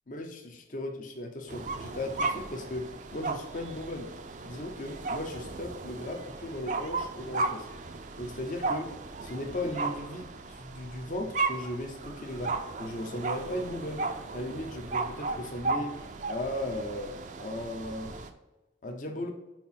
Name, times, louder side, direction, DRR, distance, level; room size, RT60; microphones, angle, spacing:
voice 1, 0.1-4.1 4.4-7.7 8.2-8.9 9.2-16.0 16.3-18.1 18.8-19.3, left 1 dB, 45° left, 3 dB, 0.7 m, -37 dB
sound 1, 1.5-18.3, right 3 dB, 45° right, 0.5 m, -35 dB
4.7 x 4.5 x 5.7 m, 1.1 s
head